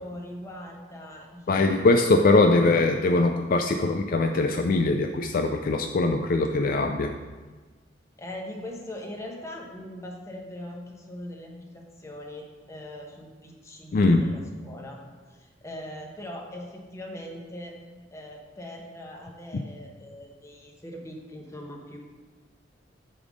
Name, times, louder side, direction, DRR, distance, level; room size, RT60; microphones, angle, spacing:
voice 1, 0.0-1.8 2.4-2.5 8.2-15.0 15.3-17.8 18.1-22.0, left 1 dB, 15° left, 0 dB, 1.1 m, -41 dB
voice 2, 1.5-7.1 13.9-14.3 19.5-19.6, left 2 dB, 50° left, 5 dB, 0.4 m, -22 dB
8.6 x 3.6 x 6.3 m, 1.3 s
head